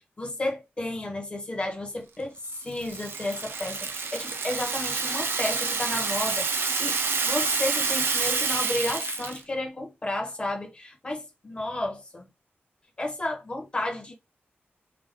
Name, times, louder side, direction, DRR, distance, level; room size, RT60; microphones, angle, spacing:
voice 1, 0.0-7.0 7.2-12.2 13.0-14.1, left 2 dB, 25° left, 1.4 m, -32 dB
Rattle (instrument), 2.5-9.4, right 4 dB, 60° right, 0.7 m, -28 dB
4.9 x 2.9 x 3.8 m
wide cardioid pair, 160°, 4 cm